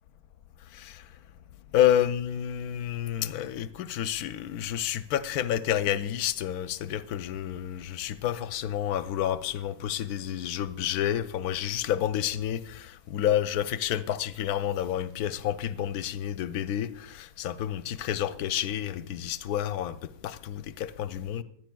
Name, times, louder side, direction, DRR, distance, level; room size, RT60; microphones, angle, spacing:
voice 1, 0.7-1.0 1.7-21.4, left 11 dB, 75° left, 1.0 m, -29 dB
23.5 x 10.5 x 2.3 m
omnidirectional pair, 1.7 m